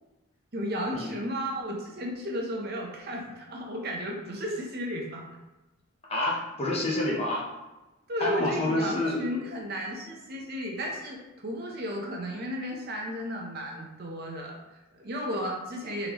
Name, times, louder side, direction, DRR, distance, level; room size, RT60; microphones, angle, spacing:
voice 1, 0.5-5.2 8.1-16.1, equal, 45° right, 0 dB, 0.7 m, -34 dB
voice 2, 6.1-7.4 8.2-9.3, left 2 dB, 30° left, -3 dB, 0.8 m, -28 dB
3.8 x 3.3 x 3.0 m, 1.0 s
head